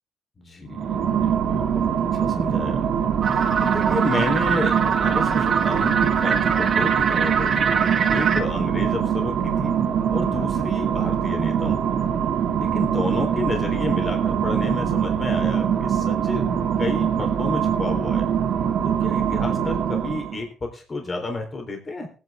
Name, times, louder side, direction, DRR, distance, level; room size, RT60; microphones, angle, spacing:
voice 1, 0.4-7.7 8.1-9.7 10.1-12.0 12.6-16.4 16.8-18.3 18.8-22.1, left 2 dB, 30° left, 2 dB, 3.7 m, -31 dB
sound 1, 0.7-20.4, right 8 dB, 70° right, 1.9 m, -23 dB
sound 2, 3.2-8.4, right 6 dB, 55° right, 1.6 m, -24 dB
19.5 x 9.7 x 3.6 m, 0.36 s
cardioid pair, 90°, 0 cm